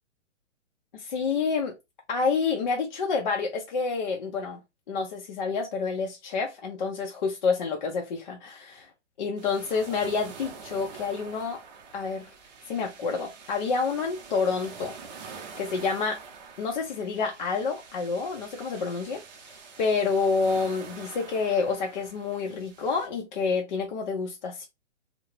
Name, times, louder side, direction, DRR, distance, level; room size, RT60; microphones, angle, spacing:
voice 1, 0.9-1.8 2.1-4.6 4.9-8.9 9.2-11.6 11.9-12.3 12.7-14.9 15.6-16.2 16.6-24.7, left 4 dB, 40° left, 0.4 m, -28 dB
sound 1, 9.4-23.1, right 5 dB, 35° right, 0.6 m, -46 dB
2.3 x 2.0 x 3.0 m
hypercardioid pair, 135°, 37 cm